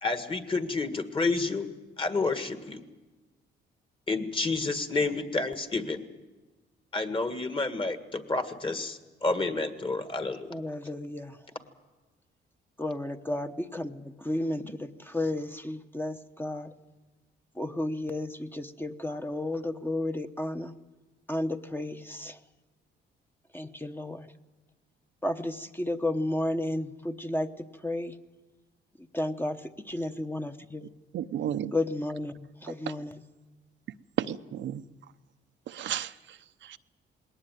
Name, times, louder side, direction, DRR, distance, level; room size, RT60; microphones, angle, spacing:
voice 1, 0.0-1.7 2.0-2.8 4.1-6.0 6.9-10.5, left 3 dB, 25° left, 8 dB, 1.8 m, -29 dB
voice 2, 10.5-11.4 12.8-16.7 17.6-20.7 21.3-22.4 23.5-24.3 25.2-27.5 27.8-28.1 29.1-29.6 29.9-30.9 31.7-33.2, left 1 dB, 10° left, 7 dB, 1.0 m, -32 dB
voice 3, 31.1-31.7 34.2-34.8 35.7-36.1 36.7-36.8, right 10 dB, 70° right, 10 dB, 0.8 m, -32 dB
20.5 x 18.5 x 9.1 m, 1.2 s
cardioid pair, 90°, 20 cm